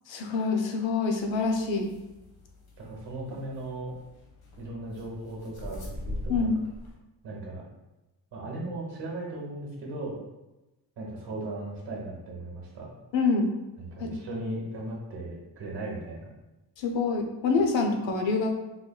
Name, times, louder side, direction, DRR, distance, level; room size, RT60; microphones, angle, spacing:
voice 1, 0.1-1.9 6.3-6.5 13.1-13.5 14.0-14.1 16.8-18.5, left 4 dB, 90° left, 3 dB, 0.7 m, -26 dB
sound 1, 1.1-6.9, left 1 dB, 55° left, 1.0 m, -42 dB
voice 2, 2.8-3.9 4.6-6.5 7.2-7.7 8.3-10.2 11.0-12.9 13.8-16.3, right 2 dB, 65° right, -3 dB, 1.1 m, -37 dB
3.9 x 3.2 x 2.2 m, 1.0 s
wide cardioid pair, 130°, 44 cm